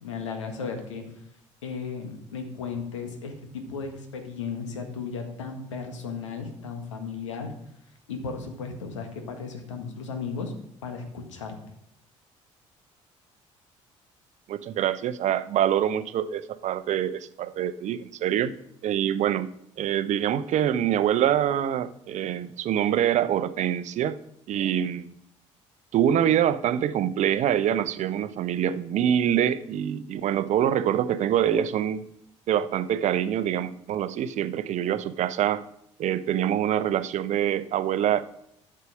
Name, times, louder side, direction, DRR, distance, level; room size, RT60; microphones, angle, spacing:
voice 1, 0.0-1.0 1.6-7.5 8.1-10.5 10.8-11.6, left 5 dB, 75° left, 5 dB, 1.8 m, -35 dB
voice 2, 14.5-18.5 18.8-19.5 19.8-24.2 24.5-25.1 25.9-32.0 32.5-35.6 36.0-38.2, right 10 dB, 50° right, 15 dB, 0.8 m, -25 dB
12.5 x 6.7 x 5.0 m, 0.74 s
figure-of-eight pair, 50°, 16 cm